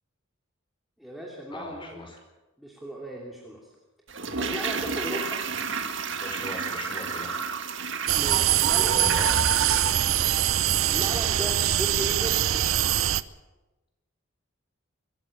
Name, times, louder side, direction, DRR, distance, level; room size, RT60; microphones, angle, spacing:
voice 1, 1.0-1.9 2.6-3.7 4.4-5.4 8.1-9.0 9.6-10.0 10.8-12.6, equal, ahead, -3 dB, 2.8 m, -37 dB
voice 2, 1.5-2.2 6.2-7.3 8.8-9.4, left 1 dB, 25° left, 3 dB, 5.2 m, -38 dB
Toilet flush, 4.1-11.2 11.4-11.5, right 5 dB, 60° right, 2.0 m, -33 dB
sound 1, 8.1-13.2, right 11 dB, 80° right, 0.7 m, -23 dB
24.0 x 14.5 x 8.6 m, 1.1 s
head